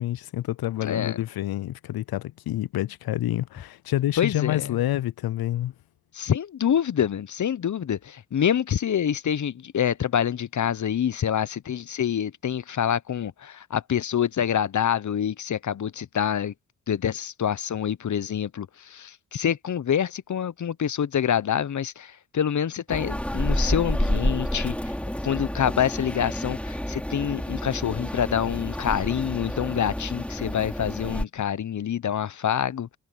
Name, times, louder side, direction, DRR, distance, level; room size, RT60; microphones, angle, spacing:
voice 1, 0.0-5.7, left 14 dB, 65° left, 0.7 m, -28 dB
voice 2, 0.8-1.2 4.2-4.7 6.1-16.5 16.9-24.8 25.2-33.0, left 9 dB, 45° left, 1.0 m, -26 dB
sound 1, 22.9-31.2, equal, 5° left, 3.1 m, -29 dB
supercardioid pair, 50°, 39 cm